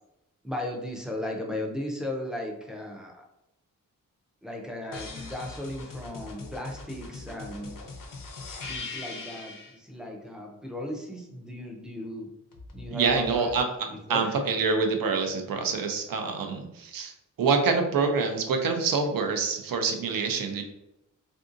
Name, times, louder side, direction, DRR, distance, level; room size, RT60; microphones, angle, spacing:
voice 1, 0.4-3.2 4.4-7.7 8.7-12.3 12.7-13.5 13.9-14.4, left 1 dB, ahead, 0 dB, 0.4 m, -36 dB
sound 1, 4.9-9.8 12.5-13.6, left 3 dB, 70° left, 0.6 m, -41 dB
voice 2, 12.9-13.7 14.1-17.1 17.4-20.6, right 4 dB, 85° right, 5 dB, 0.5 m, -26 dB
3.5 x 2.6 x 2.5 m, 0.86 s
wide cardioid pair, 170°, 33 cm